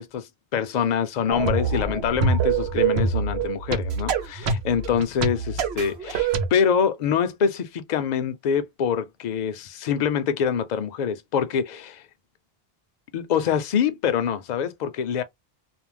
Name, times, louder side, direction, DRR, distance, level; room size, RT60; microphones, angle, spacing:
voice 1, 0.0-12.0 13.1-15.2, left 7 dB, 55° left, 0.5 m, -25 dB
sound 1, 1.3-6.5, right 5 dB, 85° right, 0.9 m, -25 dB
2.5 x 2.0 x 3.2 m
omnidirectional pair, 1.1 m